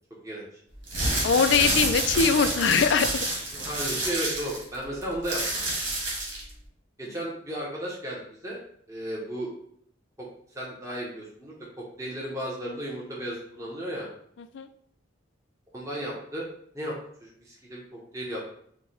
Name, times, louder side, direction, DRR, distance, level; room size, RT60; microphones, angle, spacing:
sound 1, 0.8-6.5, right 2 dB, 80° right, 1.6 m, -28 dB
voice 1, 1.2-3.2 14.5-14.7, left 5 dB, 70° left, 10 dB, 0.4 m, -22 dB
voice 2, 3.5-5.6 7.0-8.6 8.9-9.5 10.5-14.1 15.7-16.5 16.7-16.9 17.2-18.4, right 1 dB, 15° right, -4 dB, 0.9 m, -34 dB
4.7 x 2.2 x 4.1 m, 0.66 s
head